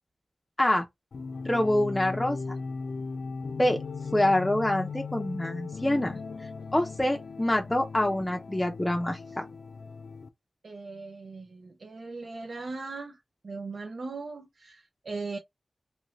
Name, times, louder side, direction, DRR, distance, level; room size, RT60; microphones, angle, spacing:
sound 1, 1.1-10.3, left 4 dB, 70° left, 0.4 m, -38 dB
voice 1, 1.4-2.4 3.6-3.8 4.1-6.2 6.7-9.4, left 1 dB, 15° left, 0.5 m, -26 dB
voice 2, 10.6-13.2 13.4-15.4, right 3 dB, 60° right, 0.5 m, -39 dB
3.1 x 2.5 x 3.0 m
wide cardioid pair, 125°, 0 cm